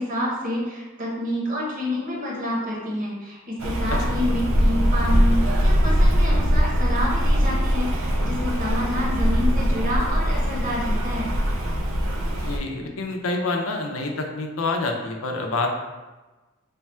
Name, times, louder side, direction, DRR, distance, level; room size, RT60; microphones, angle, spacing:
voice 1, 0.0-11.3, left 1 dB, 40° right, -4 dB, 1.0 m, -28 dB
Rain, 3.6-12.6, equal, 80° right, 0.5 m, -21 dB
voice 2, 12.4-15.7, left 3 dB, 85° left, 2 dB, 0.6 m, -27 dB
3.2 x 2.3 x 4.3 m, 1.2 s
head